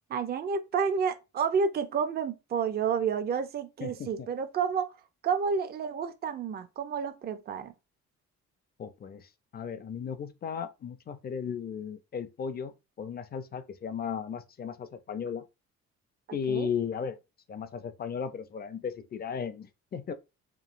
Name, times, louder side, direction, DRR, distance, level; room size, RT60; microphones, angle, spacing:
voice 1, 0.1-5.0 5.2-7.7 16.3-16.7, right 6 dB, 35° right, 0.4 m, -30 dB
voice 2, 3.8-4.3 8.8-15.4 16.3-17.2 17.5-20.1, left 7 dB, 30° left, 0.4 m, -36 dB
2.9 x 2.6 x 2.5 m
cardioid pair, 90°, 30 cm